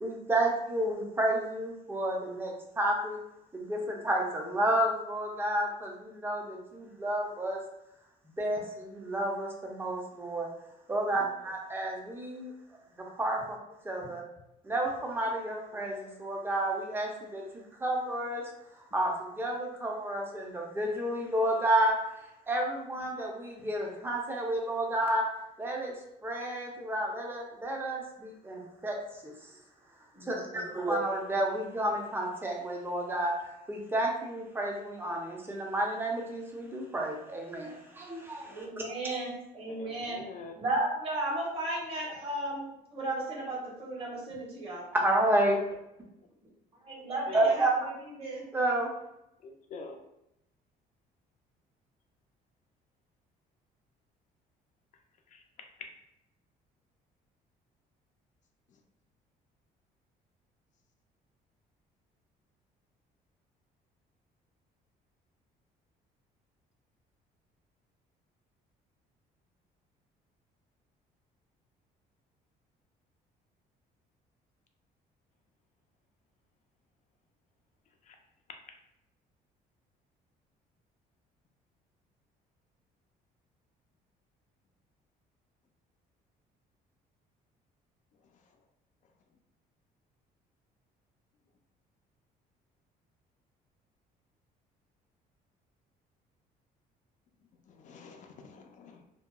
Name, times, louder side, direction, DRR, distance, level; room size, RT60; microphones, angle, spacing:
voice 1, 0.0-3.2 3.5-7.6 8.4-10.5 10.9-12.5 13.0-13.6 13.8-14.2 14.6-18.5 18.9-22.0 22.5-25.2 25.6-25.9 26.2-29.0 29.2-29.3 30.2-33.3 33.7-38.8 44.9-45.6 47.3-47.7 48.5-48.9, right 1 dB, 15° right, 0 dB, 0.5 m, -31 dB
voice 2, 30.1-30.7 38.5-40.2 40.5-44.9 46.8-48.4, right 1 dB, 35° right, -5 dB, 1.1 m, -35 dB
voice 3, 39.8-40.6 47.3-47.5 49.4-50.0 55.3-55.4 78.1-78.2 97.7-99.0, left 4 dB, 50° left, 4 dB, 0.4 m, -46 dB
2.7 x 2.2 x 2.2 m, 0.85 s
cardioid pair, 110°, 17 cm